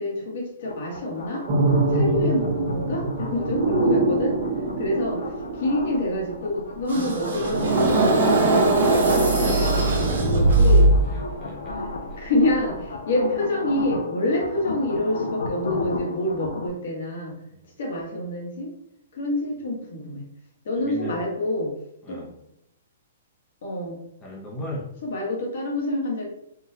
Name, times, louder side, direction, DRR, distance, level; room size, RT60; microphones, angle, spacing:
voice 1, 0.0-1.4 1.9-4.4 4.8-5.2 5.6-10.9 12.2-17.3 17.8-18.7 19.1-20.2 20.6-21.7 22.1-22.2 23.6-24.0 25.0-26.2, left 1 dB, 60° left, -1 dB, 1.0 m, -27 dB
sound 1, 0.6-16.7, left 3 dB, 90° left, 0.6 m, -35 dB
sound 2, 1.5-6.5 7.4-11.4 11.7-11.9, right 2 dB, 35° right, 0.6 m, -23 dB
sound 3, 6.9-11.2, right 2 dB, 80° right, 1.0 m, -22 dB
voice 2, 10.5-10.9 11.1-11.8 12.1-12.3 14.7-14.8 17.5-17.7 20.7-21.2 22.0-22.4 24.2-24.9, equal, 10° left, -5 dB, 0.6 m, -37 dB
3.8 x 2.2 x 2.7 m, 0.80 s
hypercardioid pair, 165°, 0 cm